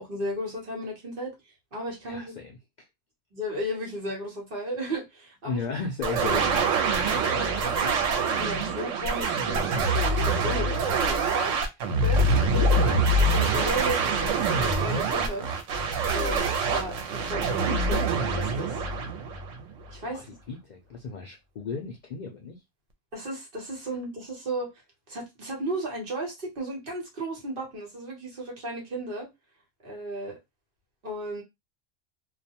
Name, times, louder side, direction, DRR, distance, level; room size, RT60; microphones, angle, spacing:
voice 1, 0.0-1.3 1.7-2.4 3.3-5.6 7.1-11.6 12.0-15.5 16.1-18.8 19.9-20.4 23.1-24.7 25.1-29.3 29.8-30.4 31.0-31.4, right 1 dB, 50° right, 1.1 m, -35 dB
voice 2, 2.0-2.5 5.5-6.6 20.1-22.6, left 5 dB, 85° left, 0.4 m, -35 dB
sound 1, 6.0-19.9, right 3 dB, 80° right, 0.9 m, -25 dB
2.3 x 2.1 x 2.8 m
omnidirectional pair, 1.3 m